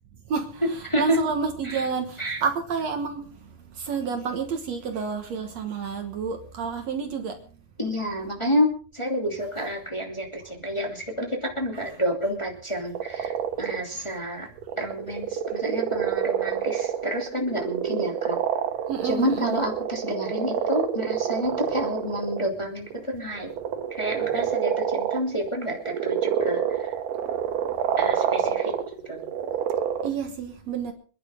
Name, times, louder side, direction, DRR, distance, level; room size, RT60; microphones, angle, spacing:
voice 1, 0.3-3.3 3.7-7.4 13.9-14.1 18.9-19.7 30.0-30.9, right 5 dB, 60° right, 2.4 m, -29 dB
voice 2, 0.8-1.2 1.6-1.9 2.2-2.4 7.8-14.5 14.8-18.4 19.0-23.5 23.9-26.9 28.0-28.8 29.1-29.3, equal, 10° left, 2.4 m, -29 dB
sound 1, 13.0-13.8 14.6-22.5 22.9-23.0 23.4-30.1, right 9 dB, 90° right, 2.8 m, -28 dB
27.0 x 11.0 x 3.7 m
omnidirectional pair, 3.7 m